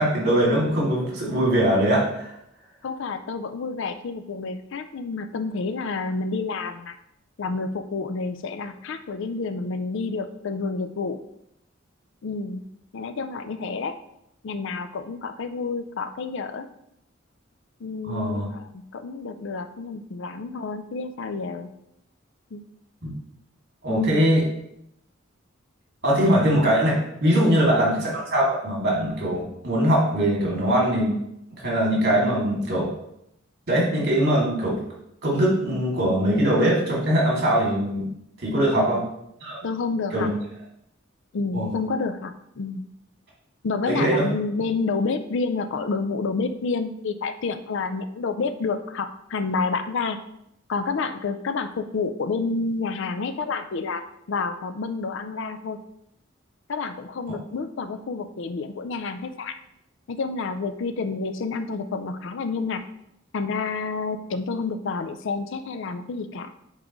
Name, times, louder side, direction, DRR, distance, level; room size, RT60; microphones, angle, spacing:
voice 1, 0.0-2.3 18.1-18.4 23.0-23.1 23.8-24.4 26.0-31.1 31.6-32.9 33.7-34.8 35.2-38.1 38.4-39.0 39.4-39.6 40.1-40.3 41.5-41.7 43.9-44.2, right 1 dB, 55° right, -4 dB, 2.4 m, -21 dB
voice 2, 2.8-7.0 7.4-11.2 12.2-12.6 12.9-14.0 14.4-16.7 17.8-21.7 22.5-22.6 23.9-24.2 27.4-27.6 38.7-39.0 39.6-40.3 41.3-42.8 43.6-50.2 50.7-55.8 56.7-59.5 60.1-62.8 63.3-66.5, left 4 dB, 65° left, 10 dB, 0.4 m, -29 dB
8.6 x 3.7 x 3.1 m, 0.78 s
head